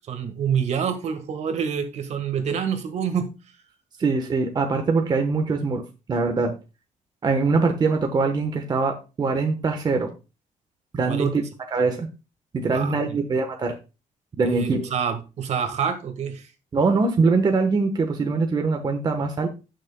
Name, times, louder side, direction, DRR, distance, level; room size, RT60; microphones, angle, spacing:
voice 1, 0.1-3.3 11.1-11.3 12.6-13.2 14.4-16.5, right 7 dB, 55° right, 1.6 m, -27 dB
voice 2, 4.0-5.8 6.1-6.5 7.2-10.1 10.9-11.4 11.7-12.1 12.5-13.8 14.4-14.9 16.7-19.5, right 4 dB, 30° right, 1.1 m, -22 dB
17.5 x 6.4 x 2.2 m
cardioid pair, 155°, 14 cm